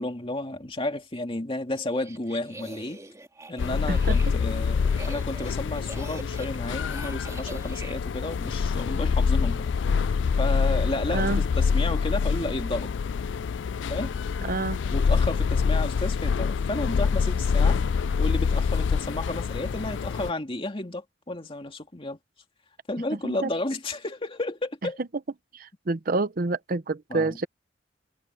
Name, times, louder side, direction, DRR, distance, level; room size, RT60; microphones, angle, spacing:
voice 1, 0.0-3.0 3.5-12.9 13.9-14.2 14.9-17.8 18.2-22.2 22.9-25.0 27.1-27.4, left 2 dB, 30° left, 2.4 m, -32 dB
sound 1, 1.8-8.0, right 2 dB, 15° right, 2.2 m, -44 dB
sound 2, 3.6-20.3, left 5 dB, 75° left, 0.4 m, -26 dB
voice 2, 11.1-11.4 14.4-14.8 23.2-23.5 25.5-27.5, right 3 dB, 50° right, 0.7 m, -28 dB
head